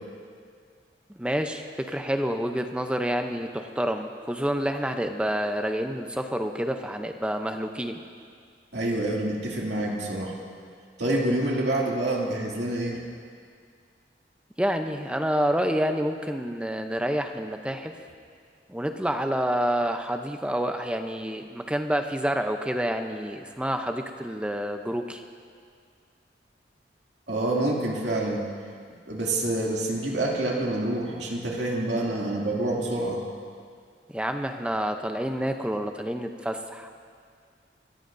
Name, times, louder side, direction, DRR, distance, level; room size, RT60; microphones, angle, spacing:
voice 1, 1.1-8.0 14.6-17.9 18.7-25.2 34.1-36.9, equal, 5° right, 5 dB, 0.6 m, -28 dB
voice 2, 8.7-10.4 11.0-13.0 27.3-28.4 29.1-33.2, right 1 dB, 75° right, -2 dB, 2.4 m, -27 dB
25.0 x 14.0 x 2.6 m, 2.1 s
head